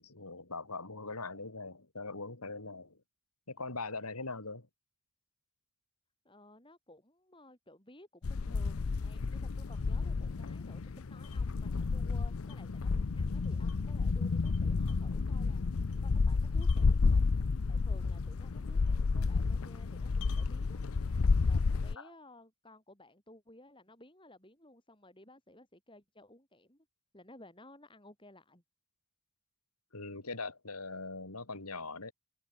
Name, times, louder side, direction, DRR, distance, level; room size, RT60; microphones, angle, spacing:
voice 1, 0.0-3.0 3.5-4.7 22.0-22.1 29.9-32.1, left 3 dB, 90° left, 4.0 m, -41 dB
voice 2, 6.2-17.3 17.7-20.8 21.5-26.9 27.1-28.6, left 1 dB, 20° left, 6.4 m, -57 dB
sound 1, 8.2-22.0, left 4 dB, 75° left, 0.6 m, -31 dB
head